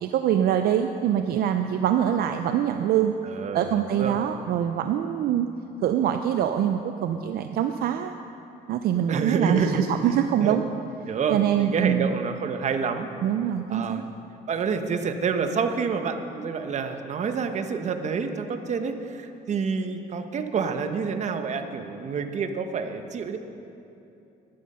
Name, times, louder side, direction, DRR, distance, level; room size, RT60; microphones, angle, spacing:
voice 1, 0.0-3.1 3.5-5.5 5.8-8.1 8.7-10.6 11.3-12.1 13.2-14.0, right 10 dB, 65° right, 7 dB, 0.5 m, -24 dB
voice 2, 3.2-4.2 9.1-9.8 10.4-10.6 11.1-13.1 13.7-14.0 14.5-23.4, right 5 dB, 45° right, 7 dB, 1.0 m, -28 dB
13.5 x 12.0 x 5.5 m, 2.8 s
cardioid pair, 110°, 17 cm